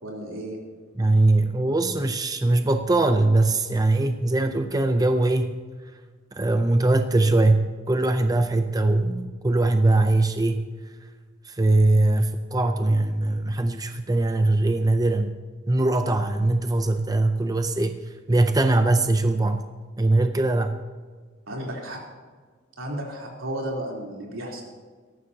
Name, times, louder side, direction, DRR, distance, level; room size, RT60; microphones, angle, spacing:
voice 1, 0.0-0.6 21.5-22.0 22.8-24.6, right 1 dB, 80° right, -2 dB, 3.5 m, -33 dB
voice 2, 1.0-5.6 6.3-10.9 11.4-15.3 15.7-19.6 20.0-20.8, right 2 dB, 20° right, 7 dB, 0.5 m, -21 dB
18.0 x 14.0 x 2.9 m, 1.5 s
head